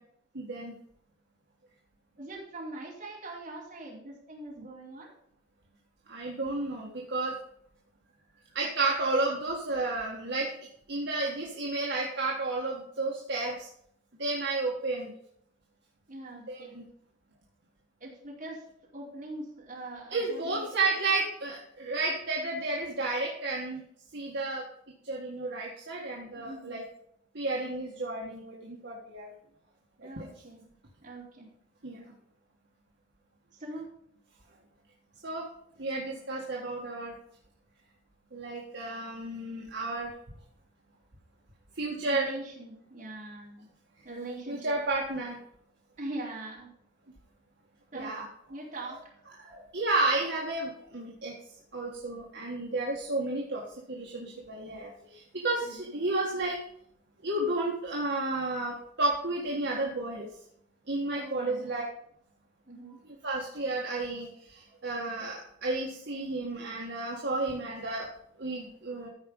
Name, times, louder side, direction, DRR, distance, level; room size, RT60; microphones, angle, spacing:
voice 1, 0.3-0.7 6.1-7.4 8.5-10.5 10.9-13.7 14.1-15.1 16.5-16.9 20.1-23.8 24.1-24.6 25.0-26.8 27.3-29.3 30.0-30.3 31.8-32.1 35.2-35.5 35.8-37.2 38.3-40.1 41.8-42.3 44.5-45.4 47.9-48.3 49.4-51.3 51.7-53.6 53.9-56.6 57.2-60.3 60.9-61.8 63.1-68.1 68.4-69.1, right 2 dB, 60° right, -3 dB, 1.7 m, -32 dB
voice 2, 2.2-5.1 16.1-16.7 18.0-18.6 18.9-20.7 26.4-26.8 30.0-30.6 31.0-31.5 33.5-33.9 42.0-43.7 44.0-44.8 46.0-46.7 47.9-48.2 48.5-49.1 55.6-55.9 61.1-61.7 62.7-63.0, right 2 dB, 40° right, -4 dB, 4.1 m, -42 dB
14.0 x 5.1 x 5.5 m, 0.71 s
head